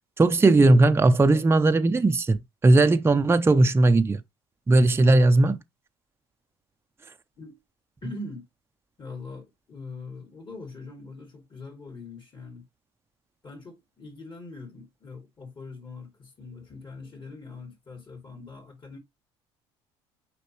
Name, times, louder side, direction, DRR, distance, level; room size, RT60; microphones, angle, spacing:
voice 1, 0.2-2.4 2.6-4.2 4.7-5.6, right 2 dB, 20° right, 0.7 m, -18 dB
voice 2, 8.0-8.5 9.0-12.7 13.4-19.0, left 3 dB, 35° left, 2.7 m, -42 dB
6.6 x 5.1 x 3.0 m
hypercardioid pair, 70°, 13 cm